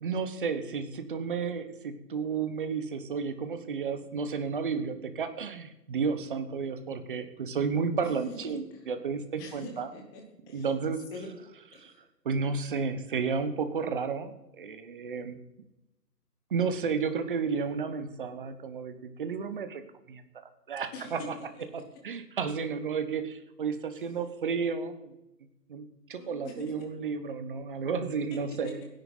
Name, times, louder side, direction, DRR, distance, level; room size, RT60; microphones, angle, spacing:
voice 1, 0.0-9.9 10.5-11.0 11.8-11.9 12.2-15.4 16.5-19.8 20.1-20.2 20.7-21.2 21.7-25.1 25.7-28.8, right 5 dB, 30° right, 10 dB, 1.3 m, -32 dB
voice 2, 8.0-8.9 9.4-10.7 11.1-11.3 11.7-12.0 20.9-22.0 23.9-24.1 26.1-26.9 28.3-28.8, left 2 dB, 10° left, 2 dB, 1.1 m, -45 dB
24.0 x 10.5 x 4.0 m, 0.93 s
figure-of-eight pair, 145°, 49 cm